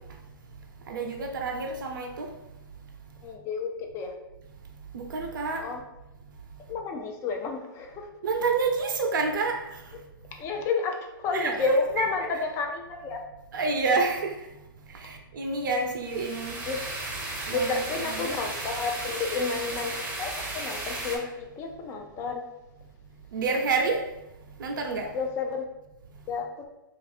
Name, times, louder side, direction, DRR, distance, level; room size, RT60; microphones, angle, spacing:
voice 1, 0.9-2.3 4.9-5.6 8.2-9.6 11.3-12.1 13.5-14.3 15.0-16.5 17.5-18.3 23.3-24.0 24.6-25.1, right 3 dB, 65° right, 3 dB, 0.7 m, -28 dB
voice 2, 3.2-4.1 5.6-5.8 6.7-8.1 10.4-13.2 16.7-16.8 17.5-22.4 25.1-25.7 26.3-26.7, left 4 dB, 25° left, 3 dB, 0.5 m, -31 dB
binaural lmnln rain outsde, 16.0-21.2, right 2 dB, 15° right, 0.8 m, -35 dB
3.1 x 2.5 x 4.2 m, 0.95 s
hypercardioid pair, 135°, 12 cm